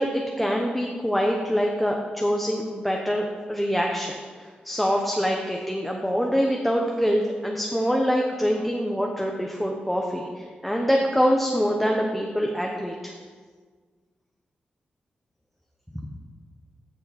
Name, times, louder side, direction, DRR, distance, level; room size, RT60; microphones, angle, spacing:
voice 1, 0.0-13.1, equal, ahead, 0 dB, 0.8 m, -25 dB
15.5 x 6.8 x 4.1 m, 1.5 s
wide cardioid pair, 175°, 3 cm